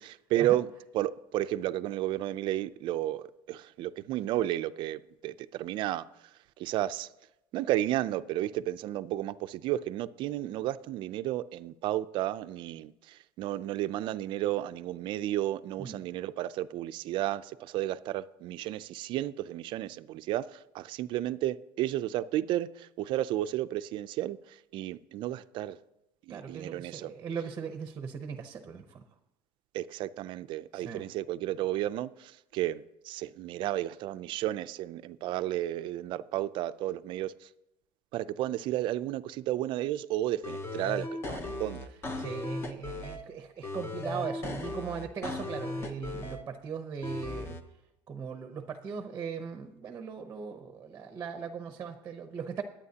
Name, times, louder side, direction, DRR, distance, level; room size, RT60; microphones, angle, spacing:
voice 1, 0.0-6.0 6.6-7.1 7.5-25.8 26.3-27.1 29.7-37.5 38.1-41.8, right 14 dB, 50° right, 0.5 m, -32 dB
voice 2, 26.3-29.0 30.7-31.1 42.2-47.6 48.1-52.6, right 6 dB, 25° right, 0.8 m, -39 dB
sound 1, 40.4-43.2 43.6-46.4 47.0-47.6, left 2 dB, 20° left, 0.9 m, -37 dB
21.0 x 8.8 x 2.8 m
cardioid pair, 155°, 11 cm